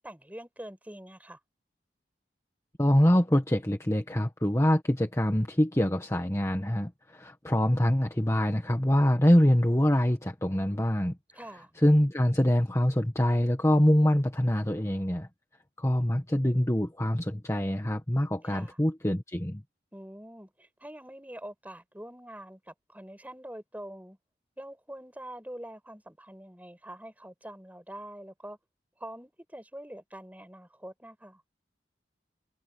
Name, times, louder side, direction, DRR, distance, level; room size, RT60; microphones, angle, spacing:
voice 1, 0.0-1.4 11.3-11.7 18.4-18.8 19.9-24.2 24.6-28.6 29.0-31.4, right 1 dB, 10° right, 7.4 m, -45 dB
voice 2, 2.8-11.2 11.8-15.3 15.8-19.6, equal, 15° left, 1.6 m, -25 dB
head